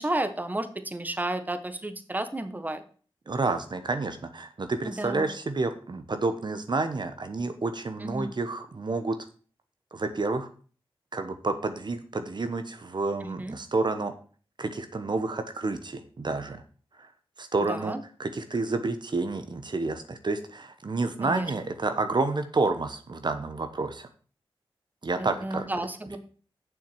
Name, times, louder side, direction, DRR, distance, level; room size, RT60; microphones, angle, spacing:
voice 1, 0.0-2.8 4.8-5.3 8.0-8.3 13.2-13.5 17.7-18.0 21.2-21.5 25.2-26.2, right 1 dB, 20° right, 10 dB, 1.2 m, -32 dB
voice 2, 3.3-9.2 9.9-10.5 11.1-14.1 14.6-16.6 17.4-17.9 18.2-24.1 25.0-25.6, right 3 dB, 50° right, 9 dB, 1.0 m, -29 dB
7.3 x 5.9 x 7.7 m, 0.41 s
wide cardioid pair, 70°, 9 cm